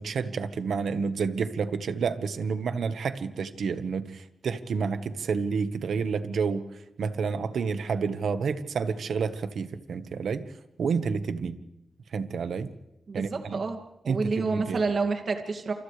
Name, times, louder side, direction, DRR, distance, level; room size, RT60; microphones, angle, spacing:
voice 1, 0.0-6.6 7.0-10.5 10.8-11.6 12.1-12.7 13.1-13.6 14.1-14.8, right 5 dB, 80° right, 10 dB, 1.4 m, -29 dB
voice 2, 13.1-15.7, right 4 dB, 60° right, 4 dB, 2.4 m, -29 dB
29.5 x 27.5 x 3.4 m, 0.91 s
cardioid pair, 85°, 0 cm